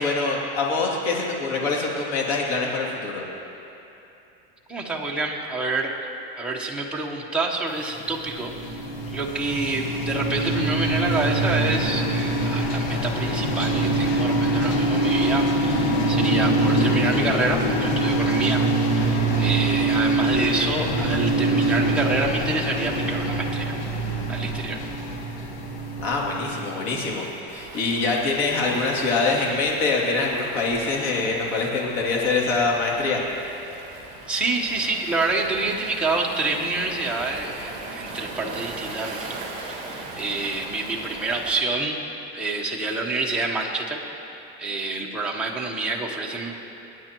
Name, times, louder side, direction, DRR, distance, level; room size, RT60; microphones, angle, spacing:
voice 1, 0.0-3.2 26.0-33.2, left 3 dB, 85° left, -2 dB, 2.7 m, -24 dB
voice 2, 4.7-5.9 6.4-8.8 9.1-18.6 18.9-23.7 24.3-24.8 34.3-42.0 42.3-44.0 44.6-46.5, right 3 dB, 5° right, -3 dB, 0.9 m, -27 dB
sound 1, 8.0-27.0, right 1 dB, 60° left, 1.7 m, -24 dB
Waves surf, 27.5-41.6, right 3 dB, 20° right, 2.4 m, -39 dB
27.0 x 9.4 x 3.0 m, 2.9 s
cardioid pair, 170°, 31 cm